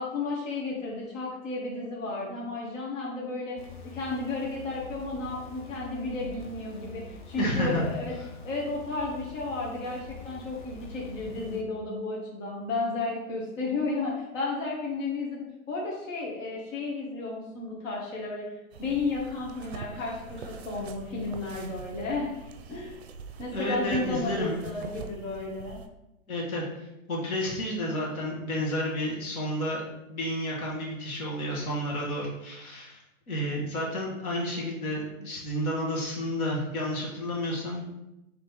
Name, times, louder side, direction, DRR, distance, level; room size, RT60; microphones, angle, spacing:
voice 1, 0.0-3.6 3.9-8.1 8.4-22.3 22.7-23.0 23.4-25.8, left 3 dB, 60° left, -3 dB, 1.4 m, -33 dB
sound 1, 3.6-11.6, left 3 dB, 35° left, 0.5 m, -45 dB
voice 2, 7.4-7.8 23.5-24.6 26.3-26.6 27.1-29.8 30.1-33.0 33.3-38.0, equal, 80° left, -3 dB, 1.5 m, -31 dB
sound 2, 18.7-25.9, right 5 dB, 50° right, 0.5 m, -43 dB
3.4 x 3.2 x 4.1 m, 0.92 s
hypercardioid pair, 155°, 43 cm